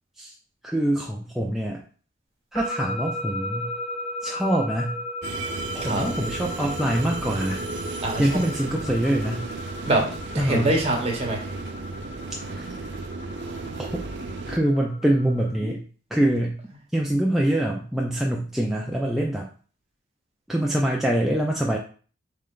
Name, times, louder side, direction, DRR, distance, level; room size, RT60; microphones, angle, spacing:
voice 1, 0.6-1.8 2.5-3.7 4.2-5.0 5.7-7.6 8.2-9.5 10.4-10.7 12.5-12.7 13.8-14.0 14.5-15.8 16.1-16.6 16.9-19.5 20.5-21.8, right 1 dB, ahead, -2 dB, 0.4 m, -24 dB
sound 1, 2.5-15.5, left 2 dB, 15° left, 1.1 m, -36 dB
sound 2, 5.2-14.6, right 3 dB, 60° right, 0.6 m, -34 dB
voice 2, 8.0-8.4 9.8-11.4 15.6-15.7, right 1 dB, 30° right, 0 dB, 1.2 m, -25 dB
4.2 x 3.3 x 3.8 m, 0.40 s
head